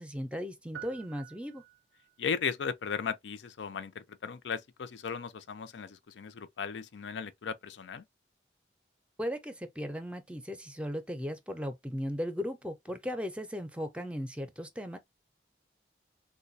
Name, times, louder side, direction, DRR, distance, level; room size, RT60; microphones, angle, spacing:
voice 1, 0.0-1.6 9.2-15.0, equal, 5° right, 0.5 m, -37 dB
sound 1, 0.7-2.2, right 11 dB, 80° right, 0.6 m, -49 dB
voice 2, 2.2-8.0, left 6 dB, 85° left, 0.5 m, -36 dB
3.9 x 2.2 x 2.6 m
head